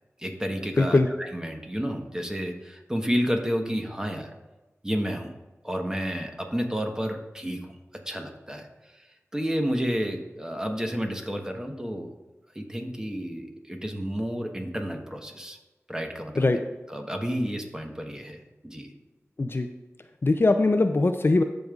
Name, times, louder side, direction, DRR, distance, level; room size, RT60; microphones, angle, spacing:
voice 1, 0.2-4.3 4.8-5.3 5.6-7.6 8.1-8.7 9.3-12.1 12.5-15.6 15.9-16.6 16.9-18.9, equal, 10° right, 3 dB, 1.2 m, -30 dB
voice 2, 0.8-1.1 16.4-16.6 19.4-19.7 20.2-21.4, left 2 dB, 45° left, 7 dB, 0.5 m, -21 dB
14.0 x 5.2 x 2.4 m, 1.1 s
wide cardioid pair, 50°, 5 cm